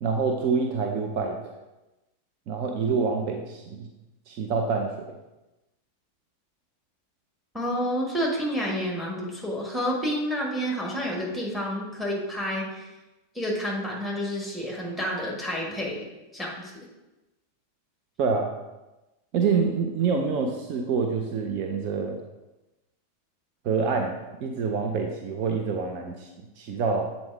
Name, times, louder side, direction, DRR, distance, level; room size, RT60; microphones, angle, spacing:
voice 1, 0.0-1.5 2.5-3.9 4.3-4.9 18.2-18.5 19.3-22.2 23.6-24.2 24.4-26.3 26.6-27.1, right 5 dB, 40° right, 2 dB, 0.6 m, -26 dB
voice 2, 7.5-12.9 13.3-16.1 16.3-16.9, equal, ahead, -2 dB, 1.6 m, -29 dB
7.8 x 4.0 x 3.5 m, 1.0 s
figure-of-eight pair, 90°, 0 cm